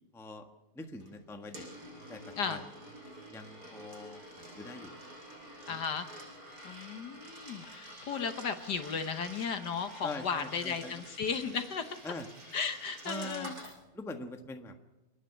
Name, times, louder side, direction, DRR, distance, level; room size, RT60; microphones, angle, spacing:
voice 1, 0.1-0.5 0.7-1.7 2.1-2.7 3.3-4.2 4.5-4.9 5.7-5.8 10.0-11.0 12.0-12.3 13.0-13.5 13.9-14.8, left 2 dB, ahead, 5 dB, 0.9 m, -43 dB
Coin (dropping), 1.0-13.8, right 1 dB, 45° right, 6.4 m, -49 dB
voice 2, 5.7-6.1 6.6-11.9 12.5-13.5, left 6 dB, 55° left, 9 dB, 1.5 m, -35 dB
28.5 x 10.0 x 9.8 m, 1.0 s
omnidirectional pair, 2.3 m